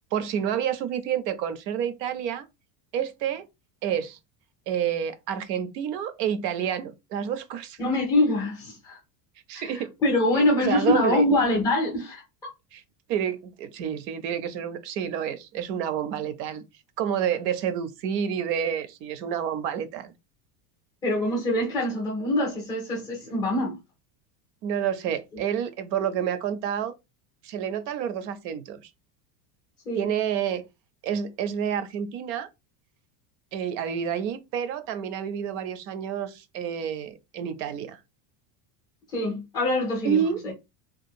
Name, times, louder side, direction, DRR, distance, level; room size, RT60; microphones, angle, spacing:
voice 1, 0.1-2.5 2.9-3.4 3.8-4.2 4.7-7.8 9.5-9.9 10.4-11.2 12.7-12.8 13.1-16.6 17.0-20.1 24.6-26.9 27.4-28.9 29.9-30.6 31.0-32.5 33.5-38.0 40.0-40.4, right 8 dB, 80° right, 0.6 m, -29 dB
voice 2, 7.8-9.0 9.5-9.7 10.0-12.2 21.0-23.8 29.9-30.0 39.1-40.3, left 1 dB, 10° left, 0.3 m, -24 dB
2.8 x 2.3 x 2.6 m
cardioid pair, 175°, 50 cm